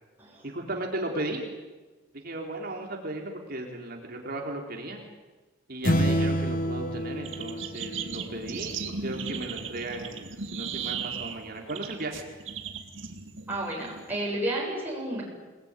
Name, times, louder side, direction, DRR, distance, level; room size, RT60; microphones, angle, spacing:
voice 1, 0.4-1.4 2.2-5.0 5.7-12.2, right 1 dB, 50° right, 1 dB, 3.7 m, -35 dB
sound 1, 5.8-8.5, equal, 45° left, 1.4 m, -27 dB
sound 2, 7.2-14.2, right 6 dB, 80° right, 2.5 m, -36 dB
voice 2, 13.5-15.2, right 1 dB, 10° right, -4 dB, 7.8 m, -31 dB
28.5 x 20.0 x 9.8 m, 1.2 s
head